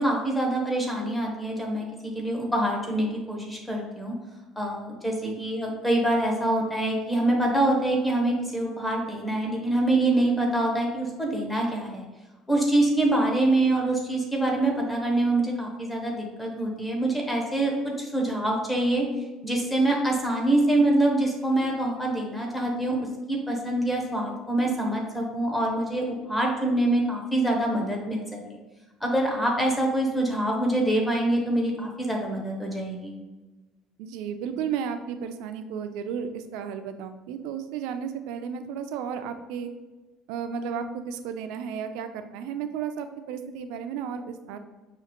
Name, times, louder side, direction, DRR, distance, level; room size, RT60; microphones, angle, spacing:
voice 1, 0.0-4.1 4.6-12.1 12.5-17.7 18.0-19.0 19.4-23.0 23.3-28.4 29.0-33.1, right 1 dB, 10° left, -1 dB, 0.8 m, -25 dB
voice 2, 34.0-39.7 40.3-44.6, right 7 dB, 80° right, 8 dB, 0.4 m, -33 dB
5.9 x 2.5 x 2.9 m, 1.2 s
cardioid pair, 145°, 0 cm